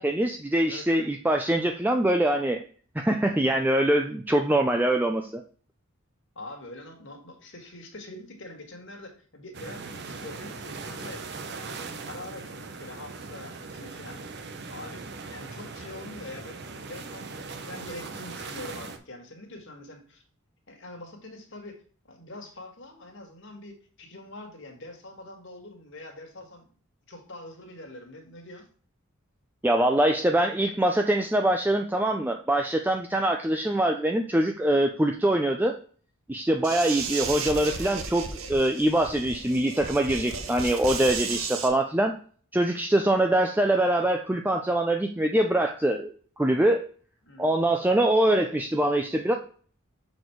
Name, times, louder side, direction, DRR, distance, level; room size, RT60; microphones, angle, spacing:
voice 1, 0.0-2.6 3.0-5.4 29.6-35.8 36.3-42.2 42.5-46.8 47.4-49.4, right 1 dB, 10° right, 4 dB, 0.4 m, -24 dB
voice 2, 0.6-1.1 6.4-11.8 12.1-12.5 12.8-14.2 14.7-15.0 15.3-20.2 20.7-21.8 22.1-26.7 27.1-28.7 36.8-36.9 47.2-47.7, left 2 dB, 55° left, 3 dB, 1.7 m, -44 dB
sound 1, 9.5-19.0, right 4 dB, 50° right, 0.7 m, -40 dB
sound 2, 36.6-41.7, right 5 dB, 70° right, 1.1 m, -34 dB
6.8 x 4.3 x 4.5 m, 0.43 s
head